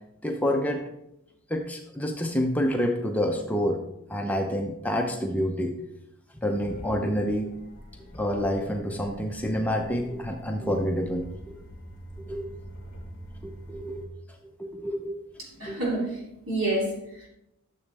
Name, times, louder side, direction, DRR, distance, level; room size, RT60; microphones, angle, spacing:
voice 1, 0.2-0.8 1.5-3.8 4.1-5.7 6.4-7.5 8.1-11.6 12.2-12.5 13.4-14.2 14.6-15.3 15.7-15.8, equal, 5° left, 2 dB, 0.6 m, -28 dB
sound 1, 6.6-14.1, equal, 40° left, 2.6 m, -45 dB
voice 2, 15.4-16.2 16.5-17.3, right 2 dB, 65° right, -3 dB, 3.2 m, -29 dB
13.0 x 7.1 x 3.4 m, 0.84 s
head